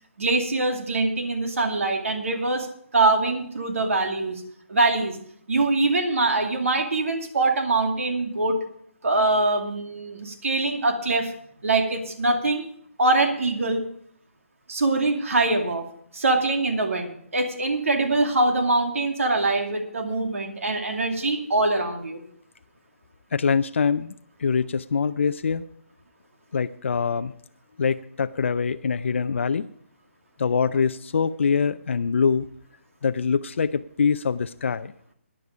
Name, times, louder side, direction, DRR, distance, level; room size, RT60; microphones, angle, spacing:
voice 1, 0.2-2.7 2.9-4.4 4.7-5.2 5.5-8.6 9.0-11.3 11.6-12.6 13.0-13.8 14.7-15.8 16.1-22.2, right 2 dB, 80° right, 4 dB, 2.5 m, -23 dB
voice 2, 23.3-24.1 24.4-25.6 26.5-27.3 27.8-29.7 30.4-32.5 33.0-34.9, left 5 dB, 60° left, 11 dB, 0.5 m, -24 dB
15.0 x 10.0 x 4.9 m, 0.64 s
hypercardioid pair, 170°, 7 cm